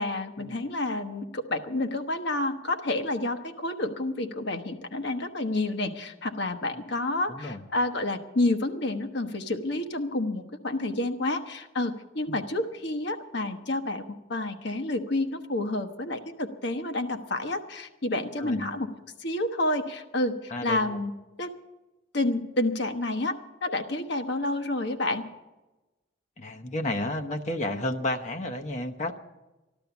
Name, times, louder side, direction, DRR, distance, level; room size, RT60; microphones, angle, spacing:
voice 1, 0.0-14.0 14.3-18.9 19.2-21.1 21.4-21.5 22.1-23.3 23.6-25.2, left 2 dB, 55° left, 7 dB, 1.1 m, -29 dB
voice 2, 7.3-7.6 12.3-12.4 18.4-18.6 20.5-21.0 26.4-29.1, left 1 dB, 35° left, 4 dB, 0.9 m, -32 dB
14.5 x 12.0 x 7.0 m, 1.1 s
head